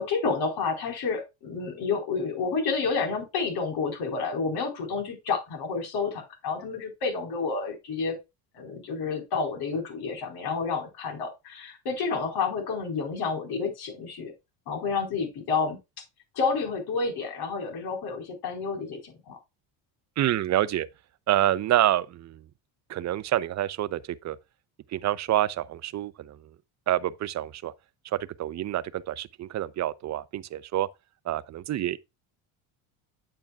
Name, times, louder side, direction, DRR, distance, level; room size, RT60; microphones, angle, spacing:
voice 1, 0.0-8.2 8.5-14.3 14.7-15.8 16.3-19.4, left 4 dB, 60° left, 4.7 m, -30 dB
voice 2, 20.2-20.9 21.3-22.4 22.9-24.4 24.9-26.4 26.9-27.7 28.1-30.9 31.3-32.0, right 13 dB, 40° right, 0.7 m, -27 dB
8.7 x 8.7 x 2.4 m
cardioid pair, 110°, 43 cm